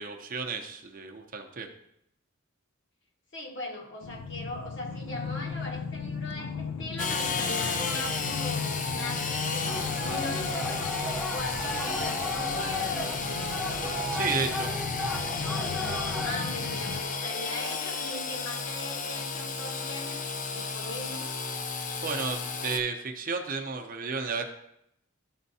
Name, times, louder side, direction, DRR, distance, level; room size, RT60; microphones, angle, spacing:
voice 1, 0.0-1.7 14.1-14.7 22.0-24.4, right 5 dB, 45° right, 4 dB, 0.7 m, -32 dB
voice 2, 3.3-13.5 16.2-20.2 20.5-21.3, left 1 dB, 60° left, 0 dB, 1.5 m, -40 dB
sound 1, 4.0-17.0, left 5 dB, 85° left, 0.4 m, -37 dB
Engine / Sawing, 7.0-22.8, left 4 dB, 40° left, 0.5 m, -33 dB
sound 2, 9.7-16.3, left 1 dB, ahead, 0.6 m, -34 dB
11.5 x 4.4 x 2.7 m, 0.77 s
head